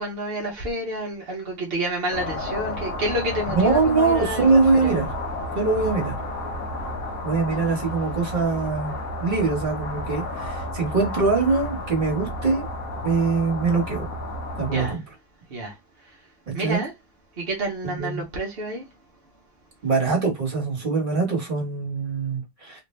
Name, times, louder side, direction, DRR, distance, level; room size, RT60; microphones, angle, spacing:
voice 1, 0.0-4.4 4.8-5.0 7.7-7.8 14.7-15.0 15.5-16.2 16.5-16.9 17.4-18.9, right 1 dB, 65° right, 0.5 m, -29 dB
sound 1, 2.1-14.9, left 1 dB, 60° left, 1.0 m, -31 dB
voice 2, 3.5-5.1 5.5-6.1 7.2-8.9 9.2-12.7 13.0-14.1 14.6-15.0 16.5-16.8 17.8-18.2 19.8-22.8, right 4 dB, 30° right, 1.3 m, -23 dB
3.2 x 2.5 x 3.1 m
omnidirectional pair, 2.2 m